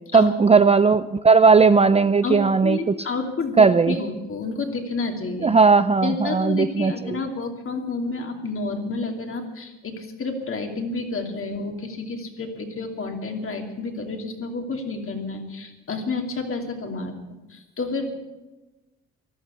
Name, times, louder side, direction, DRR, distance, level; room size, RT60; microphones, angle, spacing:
voice 1, 0.1-3.0 3.6-4.0 5.4-7.2, right 4 dB, 20° right, 13 dB, 0.4 m, -17 dB
voice 2, 2.2-5.5 6.0-17.2 17.5-18.2, left 3 dB, 45° left, 3 dB, 2.8 m, -30 dB
14.5 x 12.0 x 8.3 m, 1.1 s
cardioid pair, 90°, 30 cm